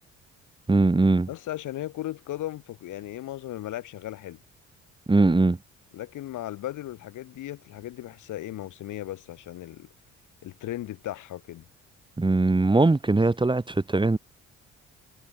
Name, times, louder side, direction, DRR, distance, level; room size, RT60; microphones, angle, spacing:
voice 1, 0.7-1.3 5.1-5.6 12.2-14.2, right 3 dB, 15° right, 1.6 m, -21 dB
voice 2, 1.3-4.4 5.9-9.9 10.4-11.7, left 14 dB, 80° left, 4.7 m, -36 dB
cardioid pair, 90°, 30 cm